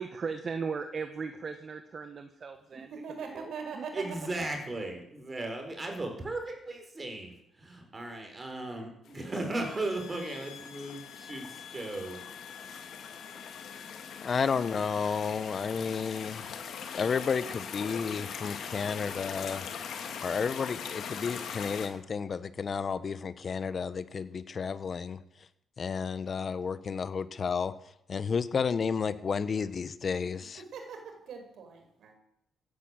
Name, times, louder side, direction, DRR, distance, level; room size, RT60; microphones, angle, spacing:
voice 1, 0.0-2.9 3.3-3.8, right 5 dB, 45° right, 7 dB, 1.5 m, -37 dB
voice 2, 2.7-4.0 30.7-32.1, right 5 dB, 70° right, 5 dB, 4.9 m, -41 dB
voice 3, 3.9-7.3 7.9-12.2, right 2 dB, 25° right, 4 dB, 5.2 m, -36 dB
sound 1, 9.1-21.9, left 7 dB, 70° left, 2.5 m, -41 dB
sound 2, 9.6-15.5, left 8 dB, 85° left, 1.7 m, -50 dB
voice 4, 14.2-16.4 17.0-19.6 20.2-25.2 25.8-27.7 28.1-30.6, left 6 dB, 45° left, 14 dB, 1.2 m, -32 dB
16.0 x 10.5 x 7.8 m, 0.77 s
cardioid pair, 90°, 0 cm